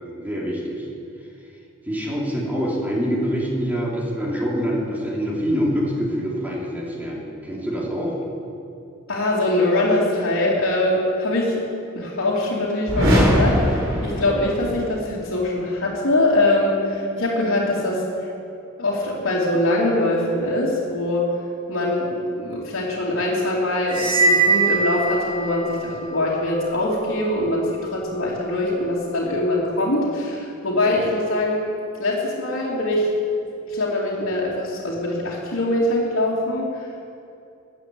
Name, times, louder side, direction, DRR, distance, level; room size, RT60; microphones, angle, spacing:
voice 1, 0.2-0.9 1.9-8.1, equal, 10° right, -4 dB, 2.9 m, -25 dB
voice 2, 9.1-11.6 11.9-18.0 18.8-21.3 21.7-31.6 32.0-33.1 33.7-36.7, left 1 dB, 65° left, -8 dB, 2.7 m, -23 dB
sound 1, 12.9-14.9, equal, 65° right, 3.8 m, -20 dB
sound 2, 23.9-25.7, right 4 dB, 80° right, 3.2 m, -20 dB
13.5 x 9.4 x 8.5 m, 2.6 s
head